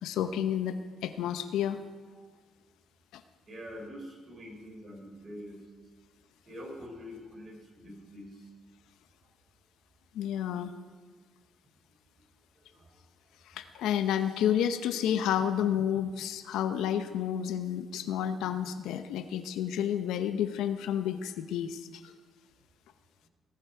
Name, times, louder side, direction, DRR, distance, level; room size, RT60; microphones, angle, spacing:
voice 1, 0.0-1.8 3.1-3.2 10.1-10.7 13.5-22.1, left 9 dB, 90° left, 10 dB, 0.7 m, -30 dB
voice 2, 3.5-5.7 6.5-8.5 12.6-13.0 13.7-13.8, equal, 40° right, 1 dB, 3.7 m, -45 dB
18.0 x 7.6 x 4.7 m, 1.4 s
cardioid pair, 90°, 0 cm